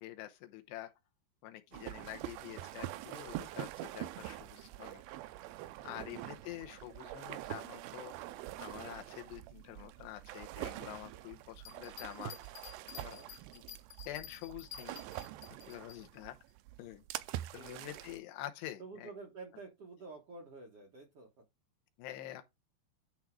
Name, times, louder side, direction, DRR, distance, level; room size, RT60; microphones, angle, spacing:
voice 1, 0.0-0.9 1.4-5.0 5.8-12.4 13.0-13.2 13.5-13.6 14.1-15.0 15.7-16.4 16.8-19.1 22.0-22.4, left 13 dB, 80° left, 3.0 m, -47 dB
sound 1, 1.7-18.2, right 14 dB, 80° right, 2.2 m, -45 dB
voice 2, 5.9-6.2 12.9-13.3 17.5-18.0 18.8-21.3, right 3 dB, 60° right, 1.6 m, -50 dB
sound 2, 11.6-16.0, left 10 dB, 65° left, 2.4 m, -51 dB
10.5 x 3.6 x 4.6 m
omnidirectional pair, 5.0 m